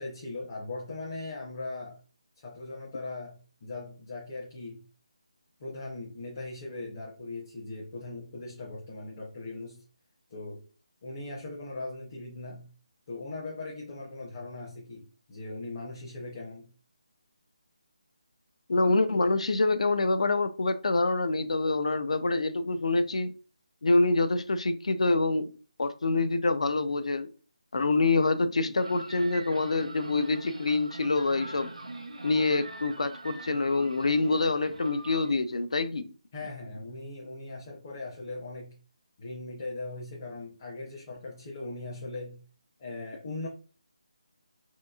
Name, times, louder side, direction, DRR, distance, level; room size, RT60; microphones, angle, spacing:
voice 1, 0.0-2.0 2.4-4.8 5.6-9.8 10.3-10.7 11.0-12.7 13.1-16.7 36.3-38.8 39.2-42.4 42.8-43.5, left 2 dB, 25° left, 0.7 m, -39 dB
voice 2, 18.7-23.3 23.8-25.5 25.8-27.3 27.7-31.7 32.2-36.1, left 3 dB, 70° left, 0.4 m, -26 dB
sound 1, 28.8-35.3, right 2 dB, 85° right, 0.7 m, -43 dB
3.4 x 2.9 x 2.3 m
figure-of-eight pair, 170°, 4 cm